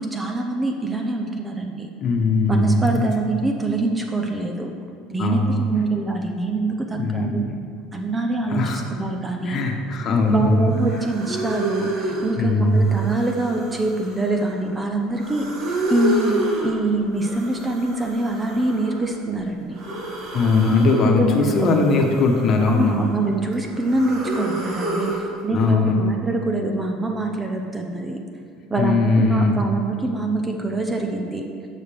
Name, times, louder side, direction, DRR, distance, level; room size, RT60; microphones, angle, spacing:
voice 1, 0.0-1.9 2.5-4.7 5.1-7.5 7.9-9.6 10.3-19.8 21.0-21.7 22.7-28.2 28.7-31.4, right 2 dB, 15° right, 3 dB, 0.6 m, -24 dB
voice 2, 2.0-3.1 5.2-5.6 6.9-7.4 8.5-8.8 9.5-10.7 12.4-12.9 20.3-23.0 25.5-26.0 28.8-29.6, left 3 dB, 40° left, 2 dB, 1.1 m, -19 dB
sound 1, 10.4-10.5 10.7-12.3 12.7-14.7 15.1-16.8 17.2-19.1 19.7-21.1 21.4-23.2 23.5-25.2, right 1 dB, 60° right, 2.2 m, -30 dB
11.0 x 6.5 x 3.5 m, 2.2 s
cardioid pair, 140°, 0 cm